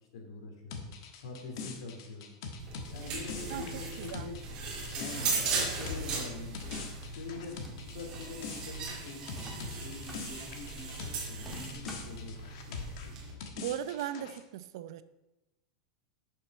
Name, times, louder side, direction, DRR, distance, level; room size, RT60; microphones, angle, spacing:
voice 1, 0.1-0.9 1.2-2.3 2.9-6.8 7.1-7.6 7.9-9.4 9.8-12.4 12.7-13.2, left 3 dB, 75° left, 3 dB, 2.8 m, -45 dB
sound 1, 0.7-11.3 11.5-14.4, left 5 dB, 55° left, 1.5 m, -44 dB
sound 2, 2.6-13.3, right 4 dB, 25° right, 2.1 m, -38 dB
sound 3, 3.4-4.2 5.1-6.0 7.4-8.3 9.3-10.2 11.4-12.2, equal, 5° left, 1.6 m, -48 dB
voice 2, 3.5-4.3 13.6-15.0, right 11 dB, 60° right, 13 dB, 0.6 m, -38 dB
10.5 x 6.6 x 5.3 m, 0.98 s
supercardioid pair, 170°, 3 cm